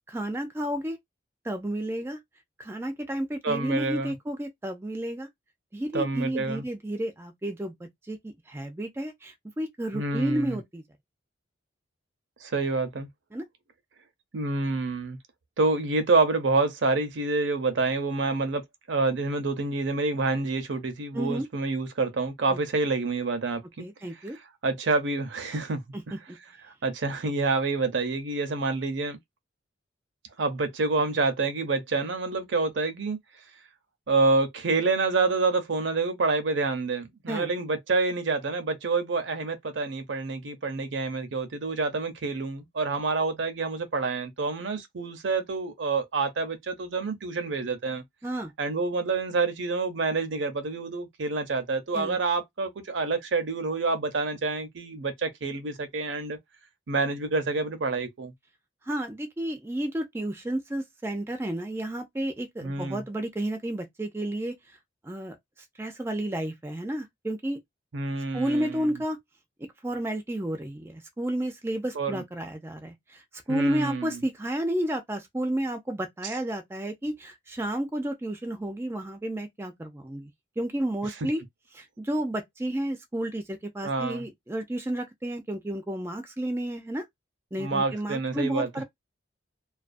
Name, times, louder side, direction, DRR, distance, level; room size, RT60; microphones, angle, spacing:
voice 1, 0.1-1.0 1.4-2.2 2.6-5.3 5.7-7.7 8.1-10.8 13.3-13.4 21.1-21.5 22.5-22.6 23.8-24.4 25.9-26.4 37.3-37.5 48.2-48.5 51.9-52.2 58.9-64.5 65.0-65.4 65.8-67.6 68.3-69.2 69.8-73.2 73.5-80.3 80.6-81.4 81.7-87.0 87.5-88.8, right 1 dB, 15° right, 0.4 m, -31 dB
voice 2, 3.4-4.1 5.9-6.6 9.9-10.6 12.4-13.1 14.3-15.2 15.6-18.6 18.9-23.9 24.6-25.8 26.1-26.2 26.8-29.2 30.4-33.2 34.1-48.0 48.6-56.4 56.9-58.3 62.6-63.0 67.9-69.0 71.9-72.2 73.5-74.2 83.8-84.2 87.6-88.7, right 3 dB, 75° right, 0.6 m, -27 dB
2.3 x 2.3 x 2.4 m
head